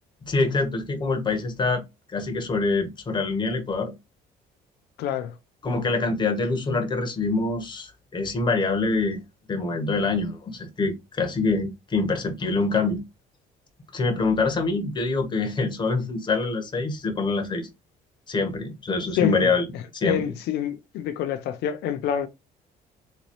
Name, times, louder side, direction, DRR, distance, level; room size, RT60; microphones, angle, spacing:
voice 1, 0.2-1.8 2.1-3.9 5.6-9.2 9.5-13.0 13.9-17.7 18.3-19.6 19.9-20.3, left 3 dB, 25° left, 1.2 m, -25 dB
voice 2, 5.0-5.3 5.7-5.9 19.2-19.4 20.0-22.3, left 10 dB, 80° left, 0.5 m, -27 dB
4.0 x 2.7 x 3.0 m
cardioid pair, 110°, 17 cm